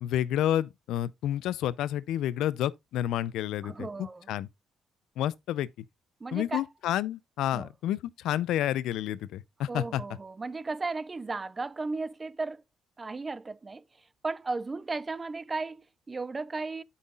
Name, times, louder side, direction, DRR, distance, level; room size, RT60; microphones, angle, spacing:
voice 1, 0.0-3.9 4.3-4.5 5.2-5.7 6.3-10.0, left 12 dB, 90° left, 0.5 m, -30 dB
voice 2, 3.6-4.3 6.2-6.7 7.5-7.7 9.7-12.6 13.0-16.8, right 3 dB, 25° right, 0.5 m, -35 dB
12.0 x 5.6 x 2.4 m
cardioid pair, 115°, 0 cm